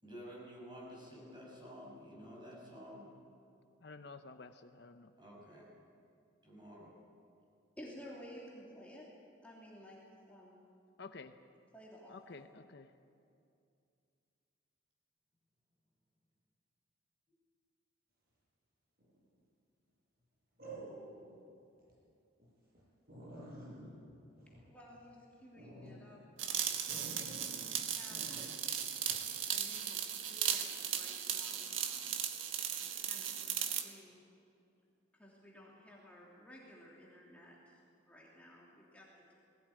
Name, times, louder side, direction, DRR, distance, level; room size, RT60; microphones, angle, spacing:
voice 1, 0.0-3.1 5.2-5.7 6.4-6.9, equal, 25° right, -3 dB, 6.8 m, -51 dB
voice 2, 3.8-5.1 11.0-11.4 12.1-12.9, left 4 dB, 55° left, 8 dB, 0.8 m, -51 dB
voice 3, 7.8-9.1 9.4-10.0 10.3-10.6 11.7-12.4 24.7-26.8 27.5-28.5 29.5-32.1 32.8-34.2 35.1-37.8 38.1-39.4, equal, 5° left, -5 dB, 3.0 m, -55 dB
sound 1, 19.0-19.4 20.6-21.4 21.8-21.9 22.4-22.5 22.8-22.9 23.1-25.1 25.5-26.0 26.9-27.7 28.1-28.5 29.1-29.3, right 1 dB, 50° right, 7.7 m, -50 dB
sound 2, 26.4-33.9, right 9 dB, 75° right, 1.5 m, -37 dB
21.0 x 17.0 x 9.5 m, 2.5 s
head